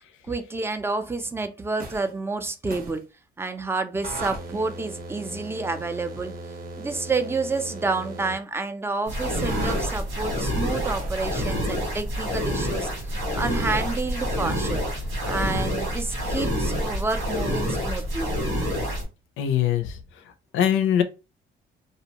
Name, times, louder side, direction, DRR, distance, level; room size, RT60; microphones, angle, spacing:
voice 1, 0.3-3.0 3.4-6.3 6.8-14.8 15.3-18.3, right 3 dB, 10° right, 0.4 m, -29 dB
sound 1, 1.8-2.1 2.7-3.0 4.0-8.4 9.5-9.9 10.8-11.2, right 2 dB, 45° right, 0.7 m, -37 dB
sound 2, 9.0-19.0, equal, 85° right, 1.6 m, -27 dB
voice 2, 19.4-19.9 20.5-21.0, left 9 dB, 85° left, 0.5 m, -21 dB
2.6 x 2.1 x 2.8 m
cardioid pair, 90°, 20 cm